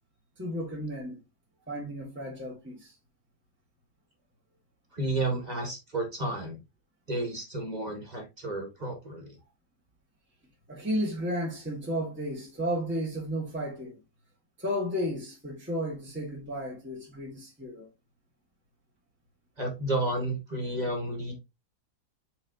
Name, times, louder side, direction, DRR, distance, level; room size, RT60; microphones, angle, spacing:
voice 1, 0.4-1.2 1.7-2.9 10.7-14.0 14.6-17.9, equal, 5° right, 1.6 m, -33 dB
voice 2, 4.9-6.6 7.1-9.4 19.6-21.3, right 2 dB, 25° right, 2.1 m, -32 dB
7.3 x 4.8 x 2.8 m
omnidirectional pair, 1.7 m